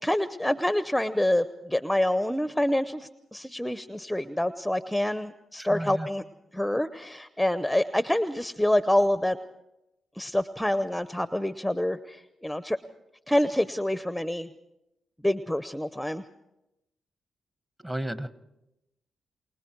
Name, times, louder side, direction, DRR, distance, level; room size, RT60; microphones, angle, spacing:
voice 1, 0.0-6.2 6.5-9.4 10.2-12.8 13.3-14.5 15.2-16.2, left 1 dB, 5° left, 12 dB, 0.8 m, -27 dB
voice 2, 5.6-6.1 17.8-18.3, right 1 dB, 15° right, 11 dB, 1.4 m, -33 dB
29.0 x 20.0 x 4.6 m, 0.91 s
supercardioid pair, 50°, 0 cm